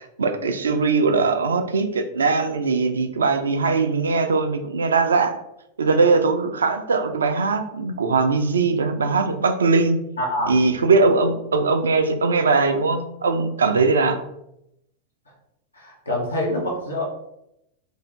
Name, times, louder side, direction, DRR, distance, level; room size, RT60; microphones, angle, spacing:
voice 1, 0.0-5.4 5.8-10.0 10.5-14.2, right 4 dB, 70° right, 7 dB, 0.3 m, -20 dB
voice 2, 10.2-10.5 15.7-17.0, left 1 dB, 75° left, -3 dB, 0.6 m, -25 dB
2.5 x 2.4 x 3.2 m, 0.82 s
figure-of-eight pair, 90°, 0 cm